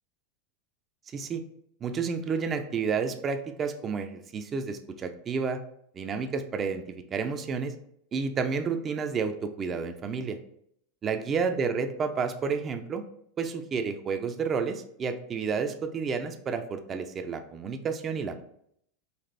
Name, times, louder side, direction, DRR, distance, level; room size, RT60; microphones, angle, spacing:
voice 1, 1.8-5.6 5.9-7.7 8.1-10.4 11.0-13.0 13.4-18.4, right 5 dB, 30° right, 7 dB, 0.4 m, -30 dB
4.1 x 2.4 x 3.3 m, 0.70 s
supercardioid pair, 120°, 0 cm